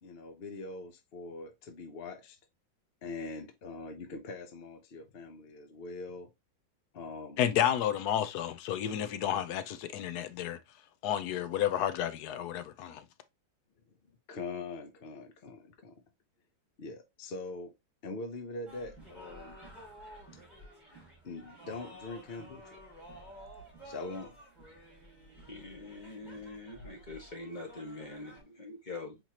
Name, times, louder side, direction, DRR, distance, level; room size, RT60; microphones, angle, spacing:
voice 1, 0.0-2.4 3.0-6.3 6.9-7.4 14.3-16.0 16.8-17.7 18.0-19.6 21.2-22.8 23.8-24.4, left 3 dB, 55° left, 0.7 m, -42 dB
voice 2, 7.4-10.6 11.0-13.0, left 10 dB, 70° left, 1.1 m, -31 dB
sound 1, 18.7-28.4, equal, ahead, 2.6 m, -52 dB
voice 3, 25.5-29.2, left 2 dB, 25° left, 1.6 m, -44 dB
4.4 x 4.0 x 2.8 m
omnidirectional pair, 1.8 m